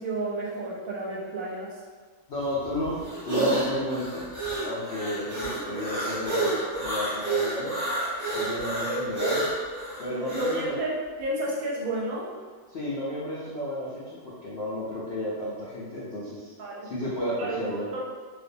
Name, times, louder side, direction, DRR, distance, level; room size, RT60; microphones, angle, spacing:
voice 1, 0.0-1.7 10.1-12.3 16.6-16.9 17.4-18.0, right 2 dB, 70° right, -4 dB, 0.9 m, -31 dB
voice 2, 2.3-4.2 4.6-7.7 8.2-9.5 10.0-10.7 12.7-16.5 16.8-17.9, left 1 dB, 75° left, -8 dB, 0.5 m, -32 dB
sound 1, 2.4-10.6, right 2 dB, 35° right, 0.9 m, -29 dB
2.5 x 2.1 x 2.6 m, 1.5 s
omnidirectional pair, 1.6 m